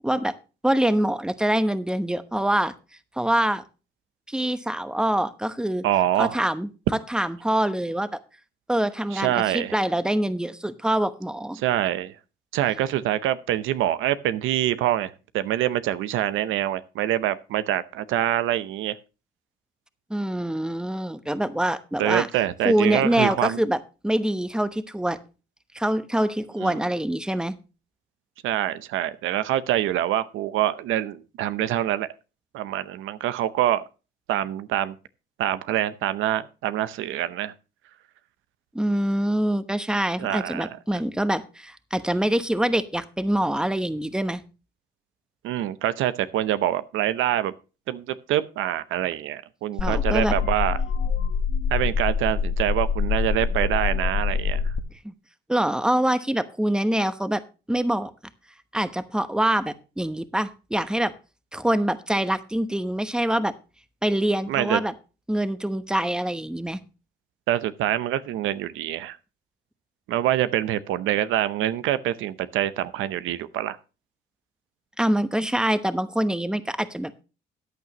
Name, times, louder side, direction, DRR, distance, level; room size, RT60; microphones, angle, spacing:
voice 1, 0.0-0.3 0.6-2.7 3.2-3.6 4.3-5.9 6.2-6.7 7.1-8.1 8.7-11.6 20.1-22.3 22.6-25.2 25.7-27.6 38.7-44.4 49.8-50.4 55.0-55.1 55.5-57.4 57.7-58.1 58.7-61.1 61.5-63.5 64.0-64.9 65.3-66.8 75.0-77.2, right 1 dB, 5° right, 1.0 m, -25 dB
voice 2, 5.8-6.4 9.1-9.8 11.6-12.2 12.5-18.9 22.0-23.6 26.6-26.8 28.4-32.1 32.5-33.8 34.3-34.9 35.4-37.5 40.2-40.8 45.4-47.5 47.9-50.8 51.7-54.7 64.5-64.8 67.5-69.2 70.1-73.8, right 12 dB, 90° right, 0.7 m, -25 dB
sound 1, 49.8-54.8, left 6 dB, 65° left, 1.3 m, -25 dB
14.5 x 9.3 x 2.9 m
cardioid pair, 90°, 20 cm